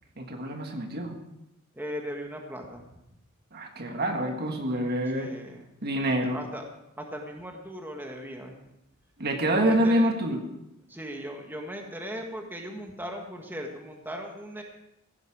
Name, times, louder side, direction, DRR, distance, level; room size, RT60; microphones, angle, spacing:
voice 1, 0.2-1.1 3.5-5.3 5.8-6.4 9.2-10.4, right 1 dB, 50° right, 4 dB, 1.7 m, -26 dB
voice 2, 1.7-2.8 5.1-5.7 6.3-6.6 7.0-8.6 9.5-10.1 10.9-14.6, equal, 10° right, 2 dB, 1.6 m, -38 dB
16.0 x 10.5 x 4.9 m, 0.86 s
head